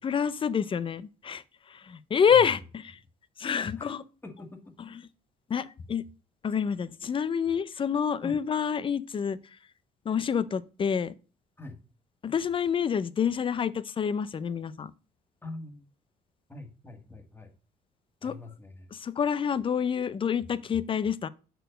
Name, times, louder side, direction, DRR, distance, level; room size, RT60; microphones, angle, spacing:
voice 1, 0.0-2.8 3.4-4.0 5.5-6.0 6.4-9.4 10.1-11.1 12.2-14.9 18.2-18.3 18.9-21.3, left 7 dB, 30° left, 0.5 m, -27 dB
voice 2, 2.3-2.6 3.8-4.0 4.2-4.7 8.2-8.4 11.6-11.8 15.4-15.9 16.5-17.5 18.2-18.9, left 2 dB, 15° left, 1.6 m, -43 dB
6.2 x 4.5 x 6.4 m
cardioid pair, 110°, 17 cm